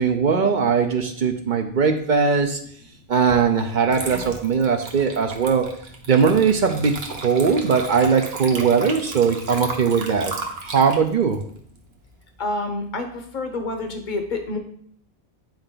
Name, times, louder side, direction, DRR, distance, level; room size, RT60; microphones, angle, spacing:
voice 1, 0.0-2.6 3.1-5.7 6.1-10.3 10.6-11.4, right 6 dB, 55° right, 6 dB, 0.7 m, -20 dB
Water / Liquid, 3.3-3.5 3.9-12.4, right 3 dB, 80° right, 1.2 m, -35 dB
voice 2, 12.4-14.6, left 2 dB, 50° left, 5 dB, 1.1 m, -28 dB
8.8 x 4.4 x 3.8 m, 0.63 s
omnidirectional pair, 1.0 m